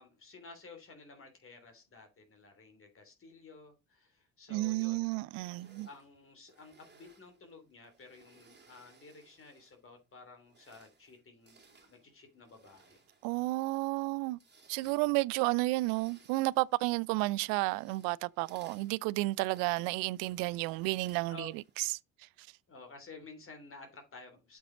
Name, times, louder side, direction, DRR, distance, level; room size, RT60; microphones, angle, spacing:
voice 1, 0.0-5.1 5.9-13.0 14.8-15.2 21.3-21.5 22.7-24.6, left 3 dB, 35° left, 3.2 m, -53 dB
voice 2, 4.5-5.9 13.2-14.4 14.7-21.9 22.2-22.5, right 22 dB, 65° right, 0.5 m, -32 dB
sound 1, 5.3-9.9 10.4-21.9, right 4 dB, 25° right, 3.1 m, -63 dB
8.0 x 6.1 x 3.9 m
hypercardioid pair, 60°, 37 cm